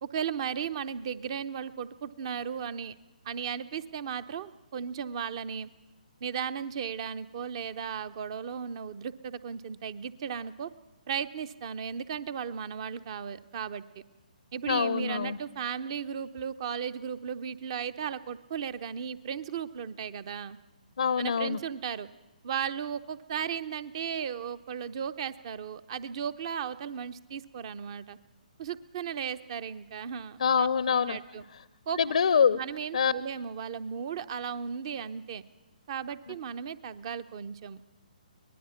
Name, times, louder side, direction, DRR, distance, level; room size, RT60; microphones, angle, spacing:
voice 1, 0.0-2.9 3.2-5.7 6.2-10.7 11.1-13.8 14.5-20.6 21.2-22.1 22.4-28.2 28.6-30.7 31.1-31.4 31.9-32.0 32.5-35.5 35.9-37.8, right 7 dB, 40° right, 15 dB, 0.8 m, -35 dB
voice 2, 14.7-15.4 21.0-21.6 30.4-31.2 32.0-32.6 32.9-33.1, left 6 dB, 60° left, 18 dB, 0.6 m, -25 dB
24.0 x 19.0 x 5.8 m, 1.1 s
figure-of-eight pair, 135°, 5 cm